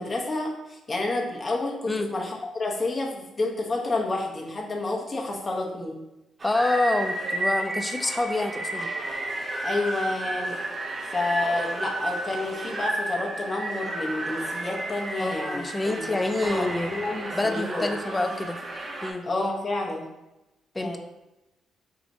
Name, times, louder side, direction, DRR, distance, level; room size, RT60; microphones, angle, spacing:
voice 1, 0.0-6.0 9.6-10.6 11.1-18.2 19.2-20.1 20.8-21.0, left 2 dB, 35° left, -1 dB, 0.9 m, -30 dB
voice 2, 6.4-8.9 15.2-16.9 17.3-18.6 19.0-19.3 20.7-21.0, left 2 dB, 15° left, 7 dB, 0.4 m, -27 dB
sound 1, 6.4-19.1, right 1 dB, 35° right, 0.6 m, -32 dB
4.8 x 2.9 x 2.6 m, 0.97 s
cardioid pair, 85°, 0 cm